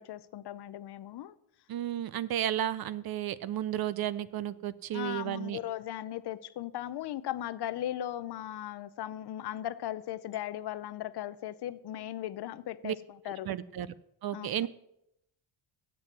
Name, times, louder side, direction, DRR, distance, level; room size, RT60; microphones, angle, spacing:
voice 1, 0.0-1.4 4.9-13.5 14.3-14.7, left 12 dB, 60° left, 0.6 m, -38 dB
voice 2, 1.7-5.6 12.8-12.9 13.4-13.9 14.2-14.7, right 11 dB, 55° right, 0.5 m, -33 dB
8.2 x 7.6 x 7.2 m
wide cardioid pair, 165°, 46 cm